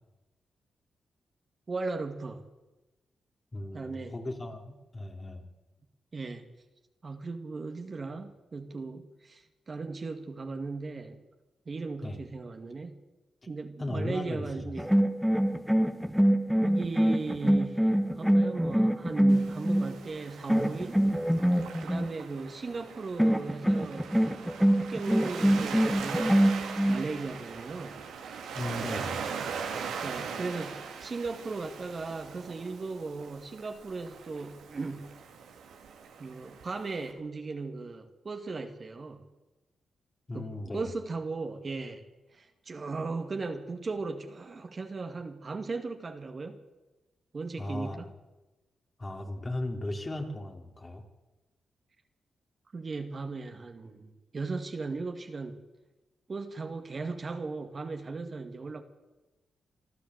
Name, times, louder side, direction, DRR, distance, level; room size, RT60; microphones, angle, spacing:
voice 1, 1.7-2.4 3.7-4.1 6.1-6.4 7.0-11.2 11.7-13.0 13.5-14.9 16.6-21.0 21.8-24.1 24.8-26.5 26.9-28.0 30.0-35.1 36.2-39.3 40.3-42.0 42.3-46.6 47.3-48.1 52.7-55.6 56.3-58.8, right 3 dB, 45° right, 2.2 m, -37 dB
voice 2, 3.5-5.4 12.0-12.2 13.8-14.7 28.5-29.2 40.3-40.9 47.6-48.0 49.0-51.0, left 1 dB, 35° left, 3.6 m, -36 dB
sound 1, 14.8-20.0 20.5-22.1 23.2-27.0, equal, ahead, 1.5 m, -25 dB
Waves surf, 19.3-37.1, right 6 dB, 85° right, 2.4 m, -41 dB
26.5 x 12.0 x 8.2 m
supercardioid pair, 50°, 0 cm